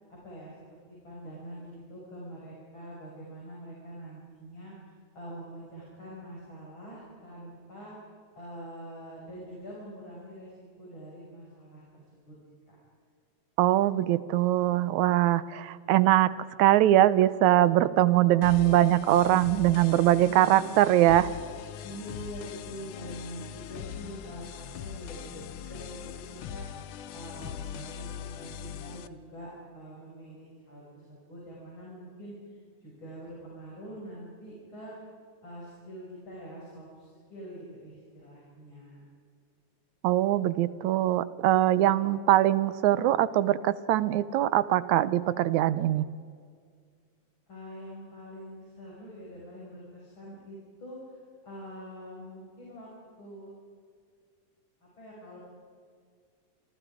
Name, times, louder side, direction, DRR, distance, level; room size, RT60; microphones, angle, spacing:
voice 1, 0.1-4.7 5.1-7.9 8.4-12.4 12.7-12.8 18.0-18.3 20.2-20.8 21.8-26.7 27.1-35.0 35.4-39.1 41.5-42.1 47.5-52.9 53.2-53.5 54.8-55.4, equal, 40° left, -5 dB, 7.1 m, -45 dB
voice 2, 13.6-16.3 16.6-21.3 40.0-46.1, right 13 dB, 80° right, 16 dB, 2.1 m, -22 dB
sound 1, 18.4-29.1, left 9 dB, 75° left, 1.2 m, -41 dB
29.5 x 25.5 x 5.0 m, 2.1 s
omnidirectional pair, 3.4 m